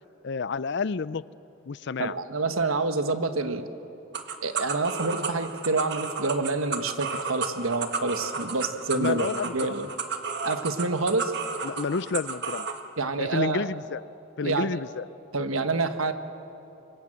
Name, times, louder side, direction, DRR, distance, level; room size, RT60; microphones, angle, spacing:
voice 1, 0.2-1.2 1.7-2.2 8.9-9.8 11.6-12.7 13.2-14.0 14.4-15.1, left 4 dB, 55° left, 18 dB, 0.5 m, -30 dB
voice 2, 2.0-3.7 4.4-9.9 10.4-11.3 13.0-13.7 14.4-14.8 15.3-16.1, right 3 dB, 90° right, 9 dB, 1.4 m, -27 dB
sound 1, 4.1-12.8, right 5 dB, 55° right, 1.6 m, -33 dB
27.5 x 24.5 x 7.6 m, 2.9 s
head